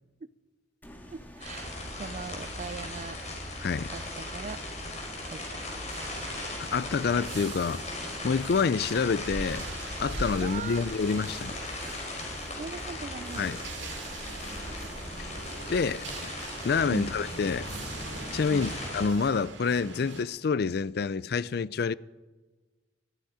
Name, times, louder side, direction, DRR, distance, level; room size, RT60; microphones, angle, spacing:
sound 1, 0.8-18.9, equal, 10° left, 1.8 m, -48 dB
voice 1, 1.1-1.7 2.0-3.2 3.9-4.6 5.2-5.6 10.4-10.8 12.6-13.5 16.9-17.1 18.5-18.8, right 4 dB, 40° right, 0.4 m, -40 dB
sound 2, 1.4-19.1, left 1 dB, 40° left, 4.8 m, -38 dB
voice 2, 3.6-3.9 6.7-7.8 8.2-9.7 10.0-11.6 13.4-13.6 15.2-15.3 15.7-16.3 16.6-17.7 18.3-21.9, left 5 dB, 60° left, 0.4 m, -27 dB
sound 3, 5.9-20.2, right 4 dB, 85° right, 2.2 m, -45 dB
20.5 x 13.0 x 4.9 m
head